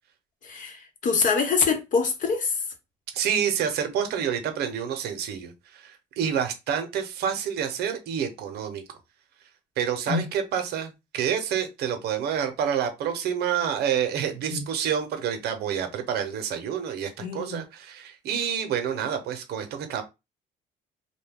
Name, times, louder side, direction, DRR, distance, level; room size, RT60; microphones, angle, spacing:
voice 1, 0.4-2.6 10.1-10.3 14.5-14.6 17.2-17.6, left 5 dB, 50° left, 0.9 m, -25 dB
voice 2, 3.1-8.8 9.8-20.0, right 8 dB, 75° right, 0.7 m, -28 dB
2.6 x 2.2 x 3.4 m
cardioid pair, 110°, 17 cm